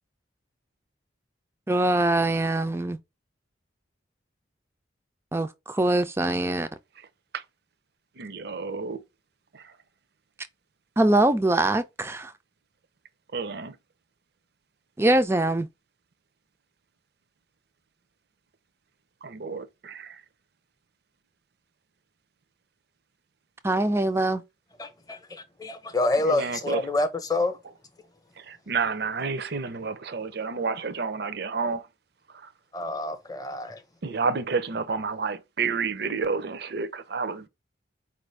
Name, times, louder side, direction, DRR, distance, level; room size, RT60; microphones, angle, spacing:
voice 1, 1.7-3.0 5.3-6.7 11.0-12.3 15.0-15.7 23.6-24.4, right 1 dB, 15° right, 0.4 m, -23 dB
voice 2, 8.2-9.0 9.5-9.8 13.3-13.8 19.2-20.2 26.2-26.9 28.4-31.9 32.3-32.5 34.0-37.5, right 4 dB, 60° right, 0.6 m, -30 dB
voice 3, 24.8-27.6 32.7-33.8, left 2 dB, 20° left, 0.7 m, -27 dB
4.6 x 2.6 x 3.2 m
head